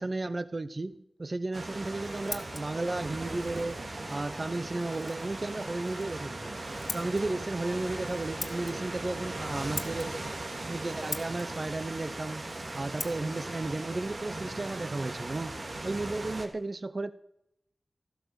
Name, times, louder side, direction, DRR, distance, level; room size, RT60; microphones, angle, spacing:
voice 1, 0.0-3.8 4.1-6.5 6.9-10.2 10.7-12.4 12.7-15.6 15.8-17.1, right 2 dB, 45° right, 14 dB, 0.8 m, -34 dB
sound 1, 1.5-16.5, right 2 dB, 60° right, 2.4 m, -38 dB
Scissors, 1.7-15.3, left 3 dB, 70° left, 1.4 m, -46 dB
14.5 x 13.0 x 6.9 m, 0.76 s
wide cardioid pair, 60°, 0 cm